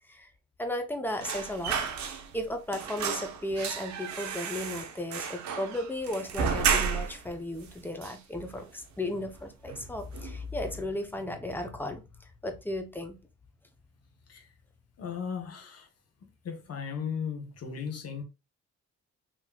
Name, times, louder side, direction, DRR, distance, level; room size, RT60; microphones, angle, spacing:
voice 1, 0.6-12.0 12.4-13.2, left 1 dB, 5° left, 0.7 m, -35 dB
sound 1, 1.2-2.5 2.7-7.3 7.6-7.7 8.0-8.8 9.1-9.4 9.7-10.4 10.7-10.8, right 6 dB, 65° right, 0.8 m, -32 dB
voice 2, 15.0-15.9 16.4-18.2, left 6 dB, 55° left, 1.1 m, -36 dB
3.9 x 3.0 x 2.3 m
cardioid pair, 90°, 30 cm